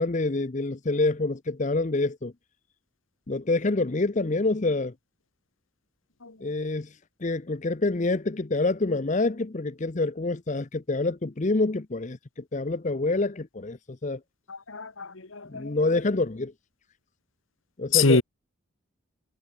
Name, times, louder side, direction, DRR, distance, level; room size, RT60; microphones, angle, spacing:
voice 1, 0.0-2.3 3.3-4.9 6.4-6.9 7.2-12.2 12.5-14.2 15.5-16.5 17.8-18.2, left 2 dB, 35° left, 0.7 m, -26 dB
voice 2, 14.5-15.7 17.9-18.2, left 4 dB, 75° left, 1.7 m, -25 dB
head